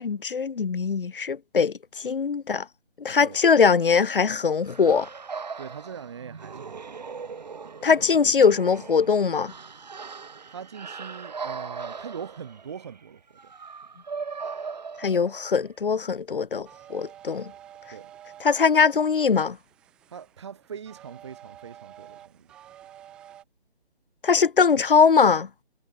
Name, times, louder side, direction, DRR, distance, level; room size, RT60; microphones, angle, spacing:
voice 1, 0.0-2.7 3.0-5.1 7.8-9.5 15.0-17.5 18.4-19.6 24.2-25.5, left 5 dB, 55° left, 0.6 m, -21 dB
sound 1, 4.6-15.7, right 5 dB, 40° right, 1.6 m, -39 dB
voice 2, 5.6-7.0 10.5-13.5 17.9-18.1 20.1-22.5, right 7 dB, 25° right, 1.7 m, -41 dB
sound 2, 16.6-23.4, right 11 dB, 5° right, 0.9 m, -49 dB
figure-of-eight pair, 155°, 32 cm